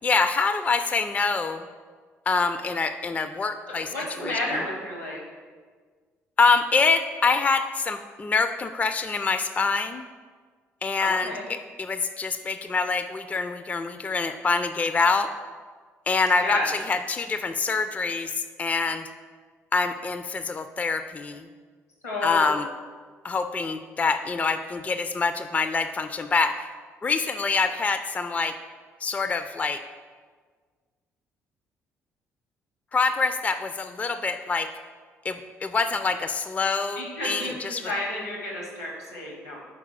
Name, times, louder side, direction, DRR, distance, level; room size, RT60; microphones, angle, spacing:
voice 1, 0.0-1.6 2.3-4.6 6.4-10.0 10.8-15.3 16.1-19.1 19.7-21.5 22.2-22.7 23.2-26.7 27.0-28.6 29.0-29.8 32.9-34.7 35.2-37.9, left 4 dB, 20° left, 9 dB, 0.3 m, -25 dB
voice 2, 3.7-5.2 11.0-11.5 16.4-16.7 22.0-22.5 37.0-39.6, left 1 dB, 85° left, -1 dB, 1.1 m, -31 dB
4.8 x 4.6 x 5.6 m, 1.6 s
figure-of-eight pair, 45°, 7 cm